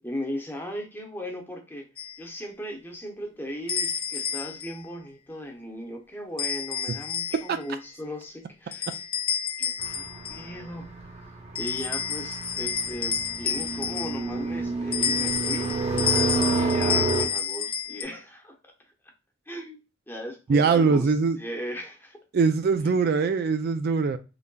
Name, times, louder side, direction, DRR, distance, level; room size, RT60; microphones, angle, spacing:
voice 1, 0.0-1.9 2.2-9.0 9.6-10.9 11.5-15.8 16.5-18.7 19.5-22.2, equal, 10° left, 0.8 m, -37 dB
sound 1, 2.0-2.2 3.7-4.8 6.4-7.6 8.7-10.5 11.5-14.4 14.9-18.0, left 7 dB, 30° left, 0.4 m, -29 dB
sound 2, 9.8-17.3, right 3 dB, 35° right, 0.9 m, -29 dB
voice 2, 20.5-21.4 22.3-24.2, right 5 dB, 55° right, 0.3 m, -22 dB
3.9 x 3.3 x 2.2 m
head